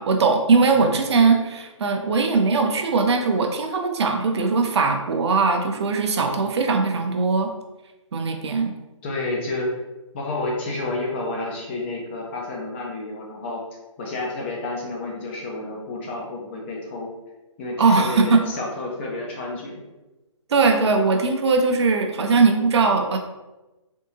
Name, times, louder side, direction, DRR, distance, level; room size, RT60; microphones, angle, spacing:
voice 1, 0.0-7.5 8.1-8.7 17.8-18.4 20.5-23.2, right 4 dB, 55° right, 3 dB, 0.5 m, -20 dB
voice 2, 0.8-1.3 9.0-9.7 10.1-13.6 14.0-17.1 17.6-19.8, left 2 dB, 20° left, -2 dB, 0.5 m, -30 dB
3.5 x 2.7 x 2.7 m, 1.1 s
hypercardioid pair, 150°, 17 cm